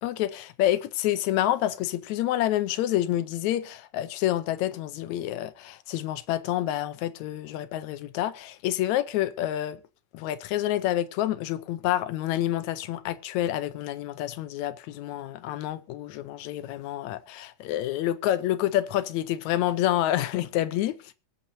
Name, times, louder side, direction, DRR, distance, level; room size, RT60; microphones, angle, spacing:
voice 1, 0.0-9.8 10.1-20.9, left 13 dB, 75° left, 1.9 m, -28 dB
23.5 x 8.5 x 2.7 m
omnidirectional pair, 3.7 m